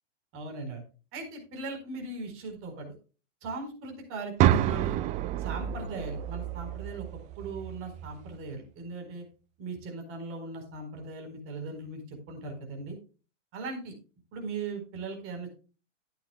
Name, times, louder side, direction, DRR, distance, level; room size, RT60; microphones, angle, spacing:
voice 1, 0.3-0.8 1.1-3.0 3.4-5.0 5.4-7.1 7.4-9.2 9.6-13.0 13.5-13.9 14.3-15.5, right 3 dB, 35° right, 4 dB, 4.5 m, -39 dB
sound 1, 4.4-8.4, right 11 dB, 20° right, 0.4 m, -29 dB
13.5 x 10.5 x 2.3 m, 0.34 s
hypercardioid pair, 120°, 38 cm